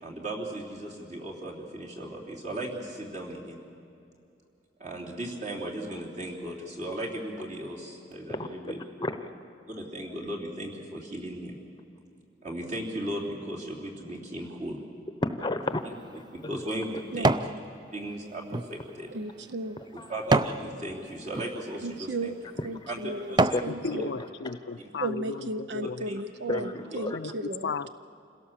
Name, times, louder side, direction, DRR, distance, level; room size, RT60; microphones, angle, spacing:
voice 1, 0.0-3.6 4.8-8.8 9.7-11.5 12.4-14.8 16.5-17.3 17.9-18.4 18.7-19.1 19.9-22.3 22.9-23.0 23.3-23.7 25.8-26.2, right 1 dB, 40° right, -2 dB, 3.3 m, -36 dB
voice 2, 8.3-9.1 15.2-15.8 16.1-16.5 20.0-20.1 22.6-23.0 23.5-24.1 24.4-24.6 26.5-27.2, left 2 dB, 25° left, 9 dB, 0.8 m, -33 dB
sound 1, 15.7-17.6 18.0-20.6 21.2-21.5 22.2-22.3 22.8-23.7 24.2-24.3, right 2 dB, 25° right, 0.5 m, -28 dB
voice 3, 19.1-19.8 21.8-22.4 22.6-24.1 25.0-27.8, right 2 dB, 70° right, 11 dB, 0.6 m, -35 dB
voice 4, 23.7-26.1 27.1-27.3 27.6-27.9, left 4 dB, 70° left, 12 dB, 0.5 m, -35 dB
26.5 x 17.0 x 7.3 m, 2.6 s
head